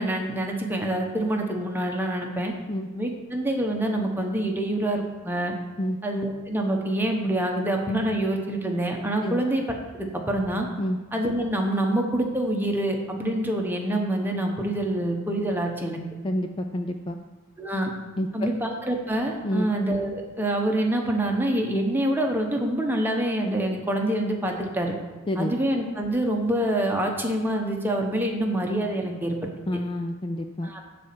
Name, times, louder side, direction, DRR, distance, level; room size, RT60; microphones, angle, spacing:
voice 1, 0.0-2.5 2.9-5.5 6.0-9.6 9.9-10.7 11.1-16.0 17.6-17.9 18.3-24.9 25.4-29.4 30.6-30.8, right 1 dB, 10° right, 1 dB, 1.1 m, -26 dB
voice 2, 16.2-17.2 18.2-18.5 19.4-19.7 25.3-25.6 29.7-30.7, left 1 dB, 25° left, 5 dB, 0.4 m, -28 dB
11.0 x 4.2 x 7.6 m, 1.3 s
head